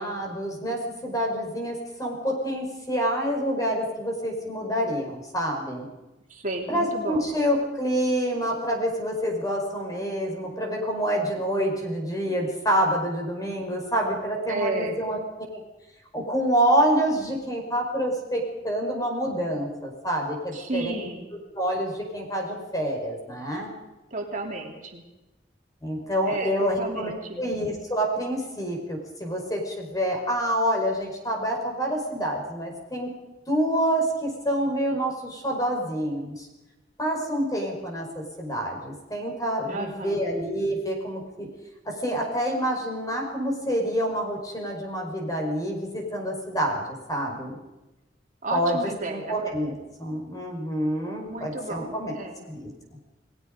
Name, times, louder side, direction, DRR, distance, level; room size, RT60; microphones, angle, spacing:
voice 1, 0.0-5.9 6.7-15.2 16.1-21.0 21.5-23.7 25.8-27.1 27.4-33.1 33.5-36.5 37.0-41.5 41.8-47.6 48.5-48.8 49.1-52.1 52.5-52.7, equal, 20° left, 1 dB, 5.1 m, -27 dB
voice 2, 6.3-7.3 14.5-15.0 20.5-21.3 24.1-25.0 26.2-27.5 39.7-40.2 48.4-49.4 51.2-52.4, right 2 dB, 45° right, 1 dB, 3.3 m, -32 dB
29.5 x 19.5 x 5.3 m, 1.1 s
head